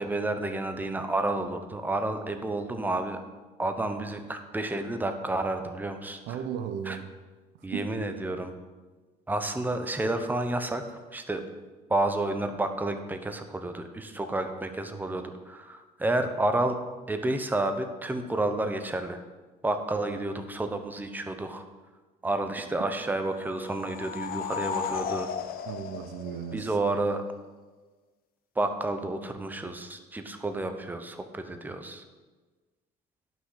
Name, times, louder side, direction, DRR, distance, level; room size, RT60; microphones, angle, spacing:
voice 1, 0.0-3.2 3.6-6.4 6.8-7.0 7.6-8.6 9.3-11.4 11.9-16.8 17.1-19.2 19.6-21.6 22.2-25.3 26.5-27.2 28.6-32.0, right 2 dB, 10° right, 7 dB, 0.9 m, -30 dB
voice 2, 6.3-7.1 7.7-7.9 25.7-26.7, right 8 dB, 90° right, 10 dB, 0.8 m, -35 dB
sound 1, 23.4-27.0, left 8 dB, 60° left, 0.8 m, -35 dB
10.5 x 6.1 x 5.8 m, 1.3 s
cardioid pair, 110°, 17 cm